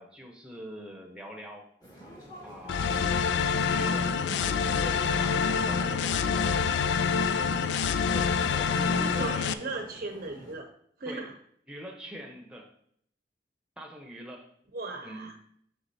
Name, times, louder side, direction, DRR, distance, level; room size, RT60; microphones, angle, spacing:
voice 1, 0.0-1.7 2.4-3.1 3.6-4.2 4.9-6.7 8.1-9.5 11.1-11.3 11.7-12.7 13.8-14.5 15.0-15.3, equal, 5° right, 2 dB, 1.0 m, -44 dB
sound 1, 1.8-10.5, right 1 dB, 20° left, 1.5 m, -47 dB
sound 2, 2.7-9.5, left 6 dB, 75° left, 0.3 m, -26 dB
voice 2, 8.9-10.7 11.0-11.3 14.7-15.3, right 2 dB, 55° right, 3 dB, 0.8 m, -37 dB
6.8 x 6.0 x 2.8 m, 0.66 s
head